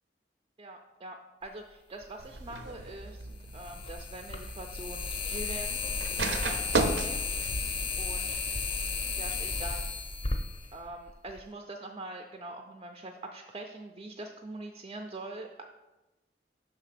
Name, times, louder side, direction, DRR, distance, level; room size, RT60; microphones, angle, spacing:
voice 1, 0.6-5.8 6.2-7.2 8.0-8.3 9.2-9.9 10.7-15.6, right 2 dB, 30° right, 3 dB, 0.4 m, -43 dB
sound 1, 2.0-2.1 3.5-11.4, left 4 dB, 30° left, 0.5 m, -34 dB
sound 2, 2.2-9.4, right 2 dB, 90° right, 0.6 m, -36 dB
sound 3, 3.2-3.3 4.0-4.2 5.7-6.1 6.4-6.9 7.2-8.4 8.7-8.8 9.0-9.3, left 2 dB, 80° left, 0.5 m, -47 dB
5.5 x 3.6 x 5.8 m, 1.1 s
head